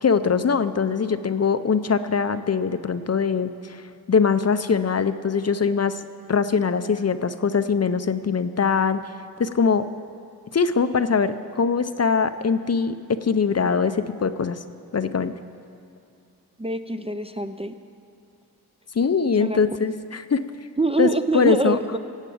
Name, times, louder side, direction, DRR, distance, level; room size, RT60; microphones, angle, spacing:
voice 1, 0.0-3.8 4.1-6.0 6.3-9.0 9.4-9.9 10.5-14.6 14.9-15.3 18.9-20.4 21.0-21.8, left 5 dB, 40° left, 12 dB, 0.5 m, -22 dB
voice 2, 16.6-17.7 19.4-19.6 20.8-22.0, right 2 dB, 15° right, 9 dB, 0.4 m, -24 dB
16.5 x 8.1 x 8.5 m, 2.5 s
wide cardioid pair, 115°, 38 cm